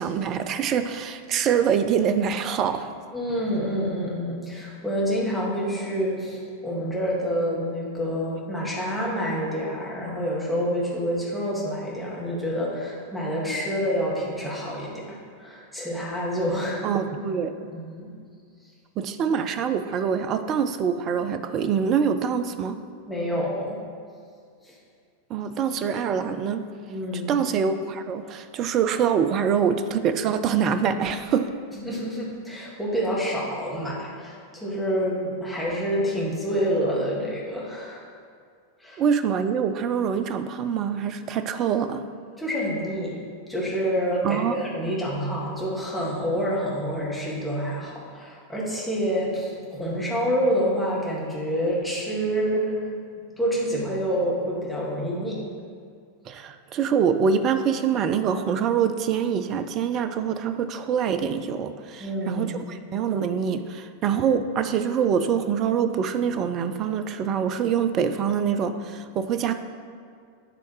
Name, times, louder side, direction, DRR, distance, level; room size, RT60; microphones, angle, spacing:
voice 1, 0.0-2.9 16.8-17.7 19.0-22.8 25.3-26.7 27.3-31.5 39.0-42.0 44.2-44.6 56.3-69.5, right 7 dB, 35° right, 10 dB, 0.4 m, -25 dB
voice 2, 3.1-16.9 17.7-18.1 23.1-23.8 24.7-24.8 26.9-27.4 31.7-38.0 38.8-39.0 42.4-43.2 43.5-52.7 53.4-55.4 62.0-62.4, equal, 5° left, -6 dB, 1.8 m, -27 dB
10.0 x 3.4 x 4.6 m, 2.2 s
figure-of-eight pair, 90°, 0 cm